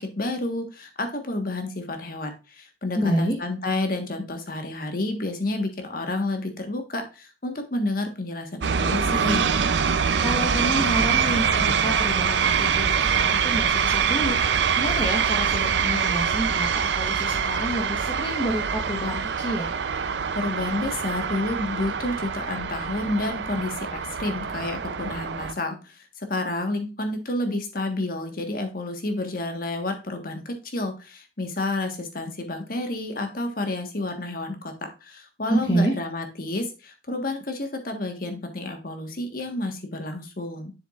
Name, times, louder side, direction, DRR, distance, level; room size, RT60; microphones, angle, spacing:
voice 1, 0.0-9.5 20.3-40.7, left 2 dB, 55° left, 5 dB, 1.4 m, -30 dB
voice 2, 2.9-3.3 10.2-14.4 14.7-19.7 35.5-35.9, equal, 25° left, -1 dB, 1.3 m, -28 dB
sound 1, 8.6-25.5, right 6 dB, 75° right, 0.5 m, -24 dB
7.2 x 7.1 x 2.4 m, 0.30 s
head